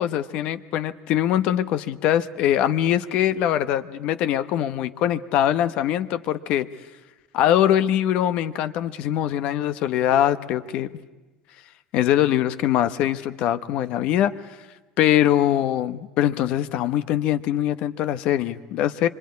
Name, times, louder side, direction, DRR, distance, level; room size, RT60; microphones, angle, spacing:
voice 1, 0.0-6.7 7.3-10.9 11.9-14.3 15.0-19.1, left 11 dB, 60° left, 13 dB, 1.0 m, -22 dB
25.5 x 24.0 x 9.7 m, 1.2 s
supercardioid pair, 105°, 2 cm